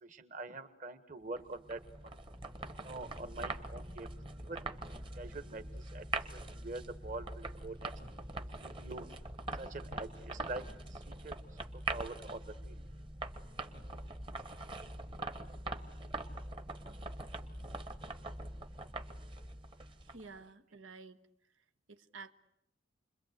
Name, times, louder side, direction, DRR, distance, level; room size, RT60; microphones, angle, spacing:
voice 1, 0.0-2.2 2.7-4.1 4.4-4.6 4.9-6.1 6.3-7.9 8.6-9.1 9.6-10.6 10.9-11.3 11.9-12.8, right 2 dB, 40° right, 1.6 m, -45 dB
sound 1, 1.4-20.4, right 2 dB, 25° right, 1.2 m, -43 dB
voice 2, 20.0-21.2 21.9-22.3, right 4 dB, 85° right, 1.3 m, -51 dB
29.5 x 22.0 x 8.2 m
head